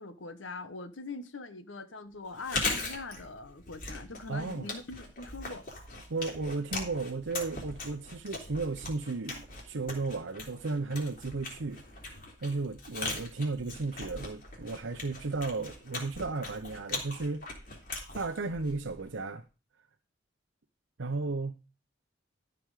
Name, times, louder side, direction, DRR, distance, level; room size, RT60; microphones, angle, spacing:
voice 1, 0.0-5.7, left 3 dB, 80° left, 1.1 m, -42 dB
Chewing mastication, 2.3-19.2, left 3 dB, 45° left, 3.4 m, -40 dB
voice 2, 4.3-4.7 6.1-11.8 12.4-17.5 18.1-19.4 21.0-21.6, right 3 dB, 80° right, 0.8 m, -34 dB
13.0 x 6.1 x 4.9 m
head